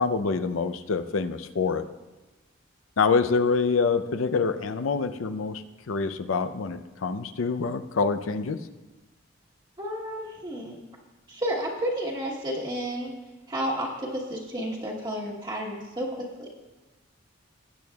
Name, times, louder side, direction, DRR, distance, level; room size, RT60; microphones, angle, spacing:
voice 1, 0.0-1.9 3.0-8.6, left 4 dB, 85° left, 11 dB, 0.5 m, -26 dB
voice 2, 9.8-10.8 11.3-13.1 13.5-16.1 16.4-16.5, equal, 25° right, -3 dB, 1.2 m, -31 dB
19.0 x 8.6 x 2.3 m, 1.2 s
head